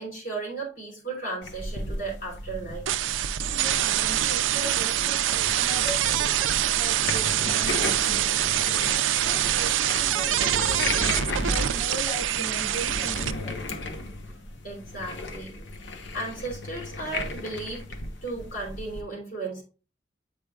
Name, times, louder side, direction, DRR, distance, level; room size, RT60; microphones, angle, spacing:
voice 1, 0.0-2.9 14.6-15.7 16.1-17.8 18.2-19.6, right 3 dB, 45° left, -3 dB, 3.2 m, -35 dB
sound 1, 1.4-19.0, left 2 dB, 70° left, 0.9 m, -35 dB
sound 2, 2.9-13.3, right 12 dB, 85° right, 0.4 m, -25 dB
voice 2, 3.5-8.4 8.9-13.5, equal, 20° left, -6 dB, 2.6 m, -39 dB
8.3 x 5.0 x 2.3 m, 0.33 s
head